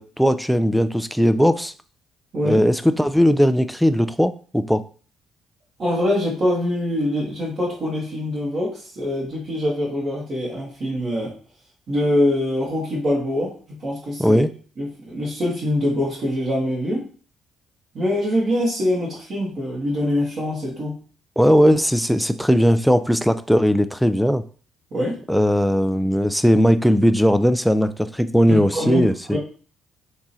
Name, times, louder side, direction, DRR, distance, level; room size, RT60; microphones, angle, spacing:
voice 1, 0.0-1.7 2.4-4.8 14.2-14.5 21.4-24.4 25.3-29.4, equal, ahead, 11 dB, 0.3 m, -18 dB
voice 2, 2.3-2.6 5.8-11.3 11.9-14.4 14.8-17.1 17.9-21.0 24.9-25.2 28.5-29.4, left 1 dB, 50° right, -6 dB, 1.4 m, -24 dB
3.6 x 3.0 x 2.7 m, 0.39 s
hypercardioid pair, 50°, 0 cm